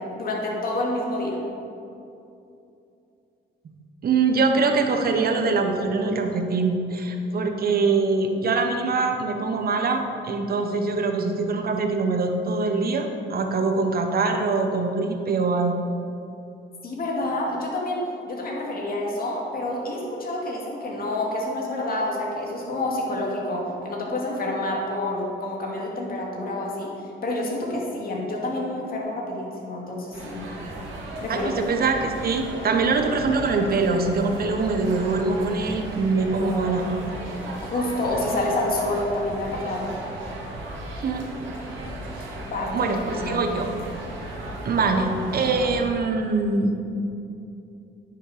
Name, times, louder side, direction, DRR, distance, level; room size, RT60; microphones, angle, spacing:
voice 1, 0.1-1.4 16.8-30.5 31.2-31.5 37.7-39.9 42.4-42.9 43.2-43.4, left 1 dB, 50° left, -2 dB, 2.3 m, -28 dB
voice 2, 4.0-15.7 31.3-36.8 41.0-41.2 42.2-42.3 42.7-43.7 44.6-46.7, right 3 dB, 50° right, 5 dB, 1.1 m, -23 dB
sound 1, 30.1-45.9, right 1 dB, 85° right, 2.1 m, -36 dB
9.9 x 6.5 x 5.0 m, 2.7 s
cardioid pair, 90°, 20 cm